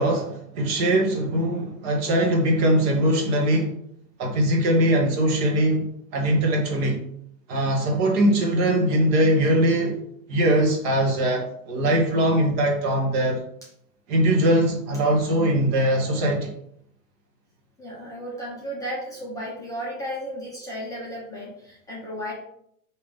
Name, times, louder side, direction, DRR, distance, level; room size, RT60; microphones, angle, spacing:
voice 1, 0.0-3.7 4.2-7.0 7.5-10.0 10.3-13.4 14.1-16.5, right 1 dB, 30° right, 1 dB, 1.0 m, -21 dB
voice 2, 17.8-22.3, equal, 5° left, -7 dB, 0.8 m, -34 dB
4.9 x 2.8 x 3.4 m, 0.71 s
hypercardioid pair, 145°, 50 cm